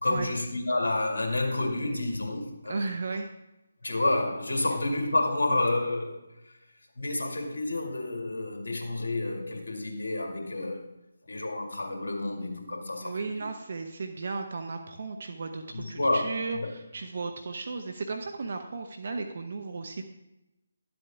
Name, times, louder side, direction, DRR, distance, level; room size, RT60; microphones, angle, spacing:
voice 1, 0.0-2.9 3.8-6.5 7.0-10.9 11.3-13.5 15.7-16.7, left 2 dB, 65° left, 2 dB, 2.1 m, -30 dB
voice 2, 2.7-3.3 13.0-20.0, right 4 dB, 55° right, 5 dB, 0.8 m, -35 dB
12.0 x 7.9 x 3.5 m, 0.94 s
figure-of-eight pair, 150°, 0 cm